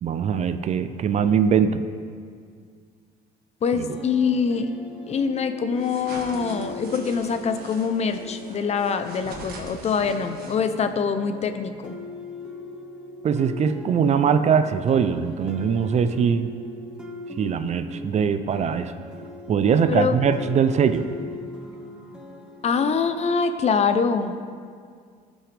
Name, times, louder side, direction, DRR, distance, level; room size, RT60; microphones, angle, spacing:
voice 1, 0.0-1.8 3.7-4.0 13.2-16.5 17.4-18.9 19.5-21.1, right 7 dB, 40° right, 10 dB, 0.5 m, -22 dB
voice 2, 3.6-4.7 5.1-11.9 19.9-20.1 22.6-24.3, left 5 dB, 40° left, 9 dB, 0.6 m, -24 dB
sound 1, 3.7-23.5, left 2 dB, 5° right, 1.1 m, -40 dB
sound 2, 5.8-10.9, right 3 dB, 65° right, 1.6 m, -43 dB
15.5 x 6.2 x 3.4 m, 2.1 s
cardioid pair, 110°, 17 cm